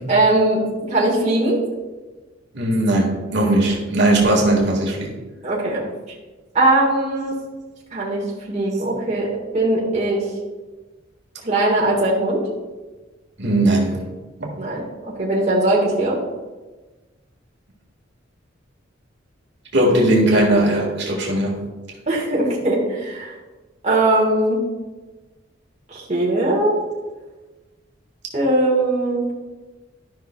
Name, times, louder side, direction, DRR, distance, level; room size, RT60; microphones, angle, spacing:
voice 1, 0.1-0.6 0.9-1.6 5.4-5.8 6.5-7.3 7.9-10.2 11.4-12.4 14.6-16.2 22.1-23.3 23.8-24.6 25.9-26.8 28.3-29.3, right 2 dB, 35° right, -4 dB, 1.6 m, -20 dB
voice 2, 2.5-5.1 13.4-14.0 14.4-14.5 19.7-21.7, right 1 dB, 65° right, -1 dB, 1.8 m, -18 dB
13.0 x 5.7 x 2.3 m, 1.2 s
head